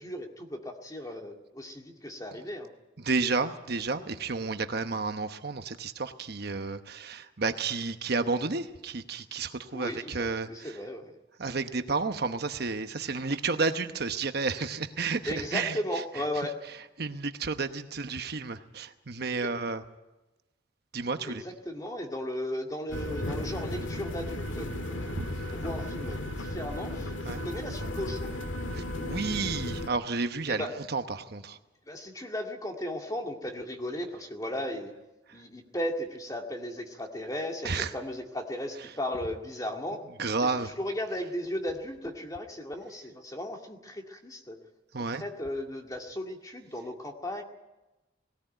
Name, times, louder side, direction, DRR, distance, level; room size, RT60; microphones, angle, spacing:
voice 1, 0.0-2.7 9.7-10.2 10.5-11.1 15.3-16.6 19.4-19.5 21.2-28.3 30.5-30.7 31.9-34.9 35.3-40.0 40.4-44.6 45.1-47.4, left 1 dB, 20° left, 3 dB, 2.1 m, -36 dB
voice 2, 3.0-10.8 11.4-15.8 17.0-19.8 20.9-21.4 25.1-25.3 27.2-27.4 28.7-31.6 37.6-37.9 40.2-40.7 44.9-45.2, right 4 dB, 55° right, 8 dB, 1.0 m, -31 dB
sound 1, 22.9-29.9, left 1 dB, 85° left, 1.8 m, -35 dB
19.5 x 18.0 x 9.1 m, 1.1 s
head